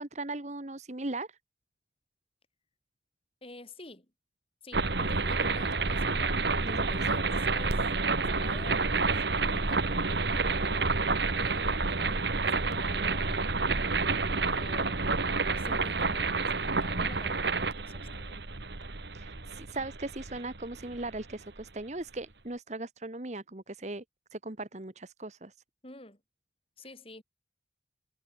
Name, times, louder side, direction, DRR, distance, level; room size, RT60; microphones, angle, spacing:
voice 1, 0.0-1.4 6.6-7.0 19.1-24.0 24.3-25.5, right 2 dB, 40° right, 1.4 m, -38 dB
voice 2, 3.4-4.1 4.6-6.4 6.7-7.8 8.2-10.9 11.3-13.4 14.4-15.0 15.4-18.4 25.8-26.2 26.8-27.2, left 2 dB, 30° left, 3.6 m, -49 dB
sound 1, 4.7-21.6, right 3 dB, 70° right, 1.8 m, -29 dB
head